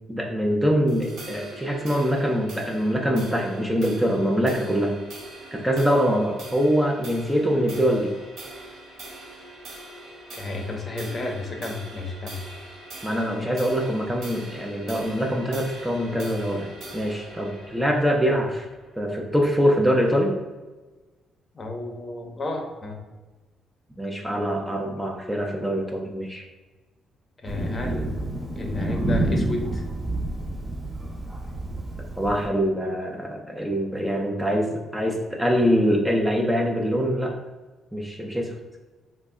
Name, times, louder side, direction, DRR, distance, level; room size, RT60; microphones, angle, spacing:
voice 1, 0.1-4.9 5.5-8.1 13.0-18.7 19.0-20.3 24.0-26.4 32.2-37.4 37.9-38.5, equal, 5° right, 0 dB, 0.5 m, -24 dB
sound 1, 0.9-19.5, right 2 dB, 75° right, 0.9 m, -43 dB
voice 2, 10.3-12.4 21.5-23.0 27.4-28.2 28.6-29.8, left 2 dB, 35° left, 2 dB, 0.7 m, -32 dB
Thunder, 27.4-32.5, right 1 dB, 35° right, 0.9 m, -28 dB
3.3 x 2.1 x 3.6 m, 1.2 s
cardioid pair, 90°, 0 cm